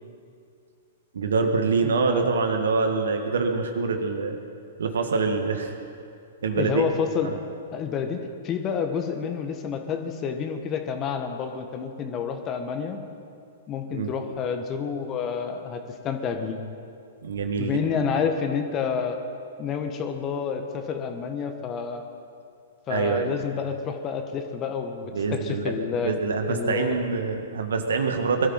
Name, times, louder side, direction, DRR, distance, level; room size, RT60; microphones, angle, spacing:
voice 1, 1.1-4.4 4.8-5.7 6.4-6.9 7.2-7.4 13.9-14.1 17.2-17.8 22.9-23.3 25.1-25.7 26.0-28.5, right 4 dB, 65° right, 5 dB, 1.9 m, -25 dB
voice 2, 1.8-2.3 6.6-7.4 7.7-8.2 8.4-13.0 13.7-16.6 17.6-19.2 19.6-22.0 22.9-26.2 26.5-27.0, left 6 dB, 30° left, 6 dB, 1.5 m, -29 dB
23.0 x 13.5 x 4.5 m, 2.4 s
figure-of-eight pair, 110°, 0 cm